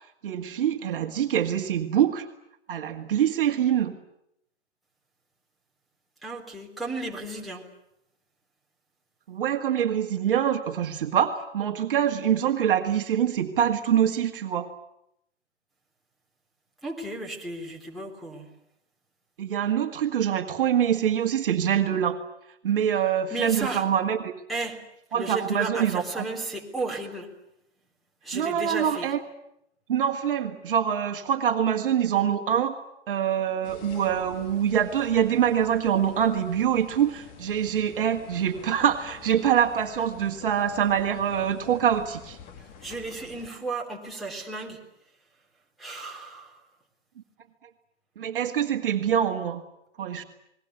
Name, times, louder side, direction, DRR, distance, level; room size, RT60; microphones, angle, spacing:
voice 1, 0.2-2.3 2.7-4.0 9.3-14.7 19.4-22.2 22.6-24.3 25.1-26.2 28.3-29.2 29.9-32.8 33.1-42.4 48.2-49.6 50.0-50.2, right 9 dB, 50° right, 5 dB, 2.0 m, -25 dB
voice 2, 6.2-7.7 16.8-18.5 23.3-23.9 24.5-24.8 25.1-27.3 28.2-29.1 42.6-44.8 45.8-46.6, right 2 dB, ahead, -3 dB, 3.6 m, -34 dB
sound 1, 33.6-43.5, left 6 dB, 25° left, 2.1 m, -48 dB
29.5 x 20.5 x 8.3 m, 0.79 s
figure-of-eight pair, 130°, 35 cm